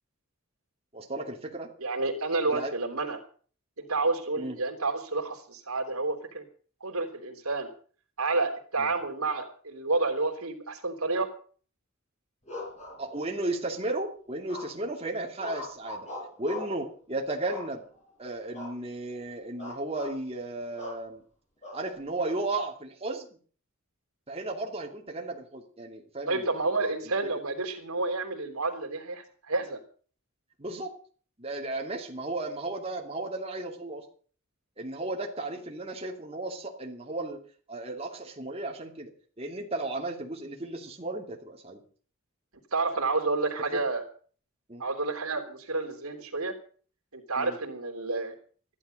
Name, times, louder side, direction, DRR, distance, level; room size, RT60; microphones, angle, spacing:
voice 1, 0.9-1.7 2.5-2.7 4.4-4.6 8.8-8.9 13.0-16.1 16.4-17.8 18.2-21.2 21.7-23.3 24.3-26.5 26.8-27.1 30.6-30.9 31.4-34.0 34.8-37.4 37.7-41.8 43.7-43.8 44.7-44.8 47.4-47.6, right 2 dB, 30° right, 1 dB, 2.7 m, -34 dB
voice 2, 1.8-3.2 3.8-6.4 6.8-7.7 8.2-11.3 26.3-29.8 42.7-44.0 44.8-46.5 47.1-48.3, right 3 dB, 90° right, 3 dB, 3.4 m, -30 dB
sound 1, 12.5-13.5 14.5-14.9 15.4-16.8 17.5-18.1 18.5-18.8 19.1-19.2 19.6-20.2 20.8-21.0 21.6-22.3, left 1 dB, 30° left, 7.3 m, -41 dB
14.5 x 11.5 x 6.6 m, 0.44 s
head